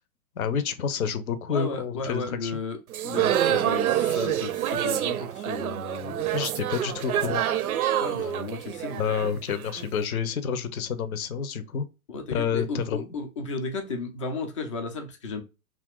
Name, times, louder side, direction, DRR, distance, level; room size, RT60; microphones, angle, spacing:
voice 1, 0.4-2.6 6.3-7.4 8.9-11.9 12.3-13.1, left 7 dB, 70° left, 0.7 m, -29 dB
voice 2, 1.5-2.8 3.0-6.4 8.0-9.3 12.1-15.4, left 3 dB, 25° left, 0.3 m, -34 dB
sound 1, 2.9-9.9, right 11 dB, 75° right, 0.5 m, -27 dB
2.8 x 2.5 x 3.4 m
hypercardioid pair, 125°, 44 cm